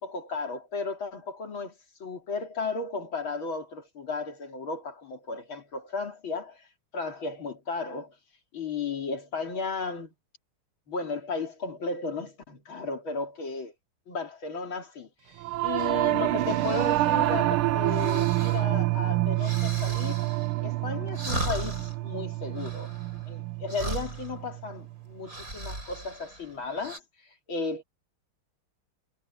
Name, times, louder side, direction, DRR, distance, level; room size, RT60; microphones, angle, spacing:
voice 1, 0.0-1.7 2.0-6.7 6.9-8.1 8.5-10.1 10.9-13.7 14.1-15.1 15.6-20.2 20.6-22.9 23.3-27.0 27.5-27.8, left 3 dB, 70° left, 4.0 m, -34 dB
Singing / Musical instrument, 15.4-24.9, right 16 dB, 90° right, 1.6 m, -27 dB
sound 1, 15.8-27.0, right 1 dB, 40° right, 7.0 m, -39 dB
omnidirectional pair, 2.3 m